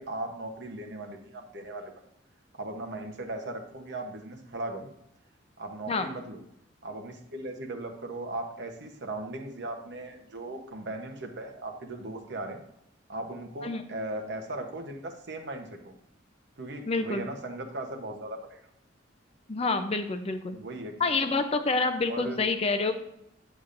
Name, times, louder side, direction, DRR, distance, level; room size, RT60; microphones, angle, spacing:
voice 1, 0.0-1.9 2.5-4.9 5.6-6.4 6.8-12.6 13.1-15.9 16.6-18.6 20.5-20.9 22.1-22.4, right 2 dB, 60° right, 4 dB, 0.9 m, -38 dB
voice 2, 16.9-17.3 19.5-20.6 21.0-23.0, left 3 dB, 30° left, 8 dB, 0.5 m, -27 dB
8.2 x 7.0 x 2.5 m, 0.79 s
head